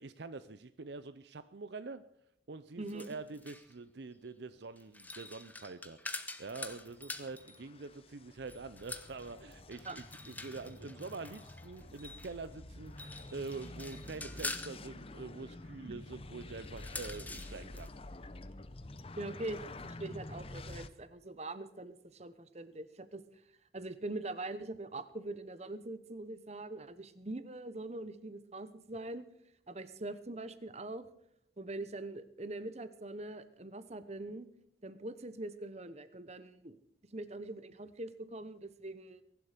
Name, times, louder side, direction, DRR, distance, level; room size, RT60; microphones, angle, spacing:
voice 1, 0.0-2.0 2.5-17.9, right 3 dB, 60° right, 13 dB, 0.6 m, -45 dB
voice 2, 2.8-3.1 9.8-10.0 15.8-15.9 19.2-23.2 23.7-29.3 29.7-31.0 31.6-34.5 34.8-36.8 37.1-39.2, right 2 dB, 35° right, 13 dB, 1.0 m, -43 dB
sound 1, 2.9-3.7 4.8-7.6 8.5-12.4 12.9-14.8 16.6-17.9, left 3 dB, 10° left, 1.0 m, -45 dB
sound 2, 6.5-20.9, left 2 dB, 30° left, 0.7 m, -49 dB
sound 3, 10.2-18.9, equal, 80° left, 3.5 m, -57 dB
22.0 x 11.5 x 5.1 m, 0.74 s
head